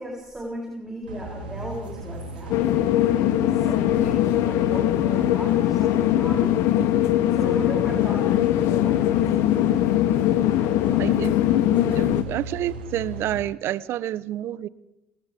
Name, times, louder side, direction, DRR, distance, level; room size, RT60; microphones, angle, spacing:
voice 1, 0.0-6.6 6.9-9.4 10.6-11.1 12.0-12.1, equal, 10° right, -2 dB, 7.8 m, -37 dB
sound 1, 1.1-13.4, right 1 dB, 85° right, 2.4 m, -36 dB
sound 2, 2.5-12.2, left 13 dB, 65° left, 1.1 m, -21 dB
voice 2, 11.0-11.4 11.9-14.7, right 13 dB, 60° right, 18 dB, 1.0 m, -29 dB
28.0 x 28.0 x 3.7 m, 0.88 s
hypercardioid pair, 60°, 5 cm